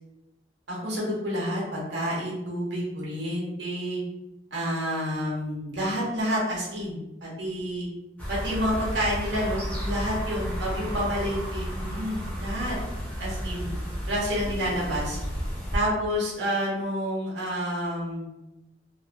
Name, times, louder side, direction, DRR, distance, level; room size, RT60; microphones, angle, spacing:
voice 1, 0.7-4.0 4.5-7.9 8.3-12.8 13.2-13.7 14.1-15.2 15.7-18.3, equal, 90° right, -5 dB, 0.8 m, -29 dB
sound 1, 8.2-15.8, equal, 10° left, 0.6 m, -32 dB
2.9 x 2.1 x 2.4 m, 0.97 s
head